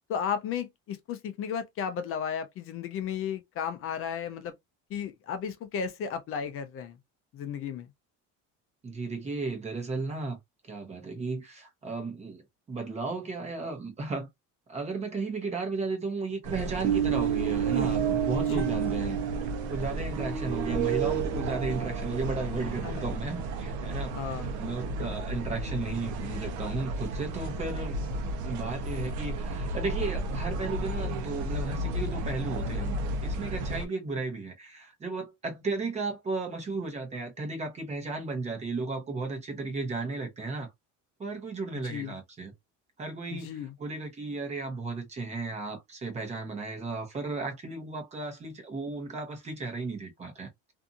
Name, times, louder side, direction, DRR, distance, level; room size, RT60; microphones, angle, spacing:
voice 1, 0.1-4.5 4.9-7.0 7.3-7.9 18.3-18.7 22.8-23.1 24.1-24.6 41.8-42.2 43.4-43.7, left 7 dB, 45° left, 0.5 m, -34 dB
voice 2, 8.8-10.4 10.7-12.4 12.7-14.3 14.7-19.2 19.7-28.2 28.4-40.7 41.2-42.5 43.0-50.5, right 3 dB, 20° right, 0.8 m, -34 dB
sound 1, 16.4-33.8, right 4 dB, 65° right, 0.8 m, -31 dB
2.6 x 2.5 x 2.5 m
cardioid pair, 165°, 32 cm